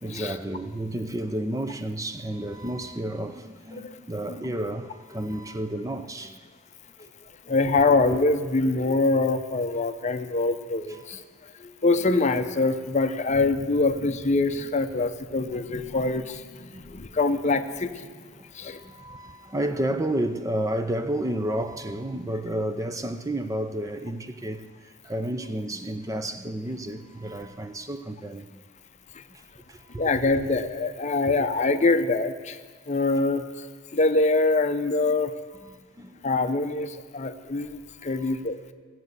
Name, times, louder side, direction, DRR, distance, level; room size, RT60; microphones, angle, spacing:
voice 1, 0.0-6.4 15.9-16.0 16.7-17.0 18.3-28.6 29.3-29.4 29.7-30.1 31.3-31.5 35.6-36.2 38.2-38.3, right 1 dB, 15° right, 0.5 m, -31 dB
voice 2, 7.5-11.2 11.6-18.1 18.5-18.8 30.0-32.6 32.9-33.4 33.9-35.3 36.2-38.6, left 3 dB, 35° left, 0.6 m, -24 dB
15.5 x 7.7 x 8.1 m
head